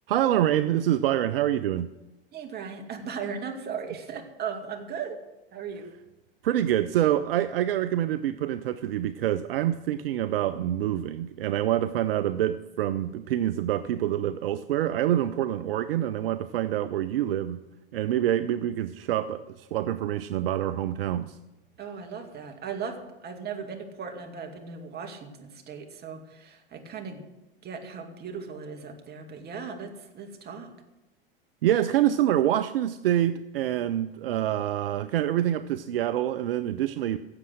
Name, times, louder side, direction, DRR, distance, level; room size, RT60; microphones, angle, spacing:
voice 1, 0.1-1.9 6.4-17.6 17.9-21.4 31.6-37.2, right 12 dB, 70° right, 12 dB, 0.6 m, -26 dB
voice 2, 2.3-5.2 5.5-5.9 21.8-27.3 27.6-30.7, right 6 dB, 35° right, 3 dB, 2.2 m, -37 dB
16.5 x 7.5 x 6.3 m, 1.0 s
figure-of-eight pair, 85°, 30 cm